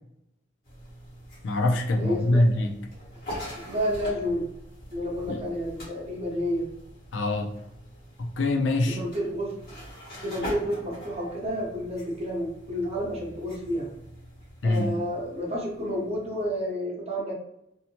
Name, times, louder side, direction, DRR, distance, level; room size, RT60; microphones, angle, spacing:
sound 1, 0.6-16.7, equal, 50° left, 1.3 m, -43 dB
voice 1, 1.4-2.7 5.2-5.4 7.1-7.5 8.2-9.0 14.6-14.9, left 2 dB, 70° left, 2 dB, 0.4 m, -24 dB
voice 2, 2.0-2.4 3.6-4.5 4.9-6.7 8.9-9.6 10.2-13.9 14.6-17.3, equal, 35° right, -3 dB, 0.9 m, -30 dB
2.7 x 2.1 x 2.8 m, 0.81 s
head